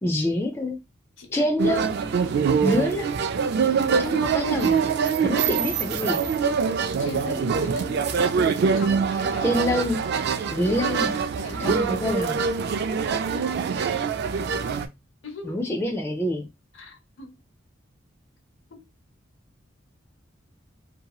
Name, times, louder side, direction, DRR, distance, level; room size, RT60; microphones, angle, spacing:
voice 1, 0.0-0.8 1.3-1.9 2.6-3.1 4.0-4.8 5.2-6.2 9.4-10.0 10.5-11.1 11.6-12.4 15.4-16.5, left 1 dB, 15° left, 0.4 m, -26 dB
voice 2, 1.2-1.5 7.0-8.0 8.7-9.6 11.0-11.9 15.2-15.6 16.7-17.4 18.7-18.8, left 2 dB, 80° left, 0.7 m, -39 dB
sound 1, 1.6-14.9, right 6 dB, 55° right, 0.3 m, -24 dB
2.9 x 2.7 x 2.3 m
head